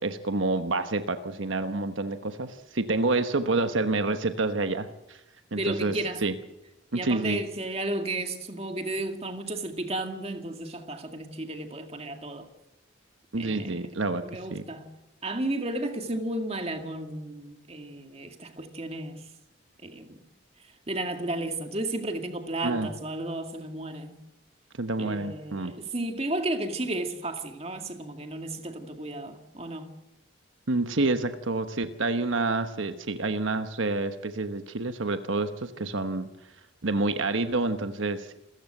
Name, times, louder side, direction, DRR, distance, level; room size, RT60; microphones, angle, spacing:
voice 1, 0.0-5.2 5.5-5.9 6.2-6.3 6.9-7.4 13.3-14.2 14.5-14.6 22.6-22.9 24.8-25.7 30.7-36.3 36.8-38.3, right 3 dB, 80° right, 1.2 m, -28 dB
voice 2, 5.5-6.2 6.9-12.5 13.4-13.8 14.2-14.9 15.2-19.2 19.8-20.2 20.9-24.2 25.0-29.9, right 2 dB, 30° right, 2.1 m, -33 dB
27.5 x 14.5 x 7.8 m
head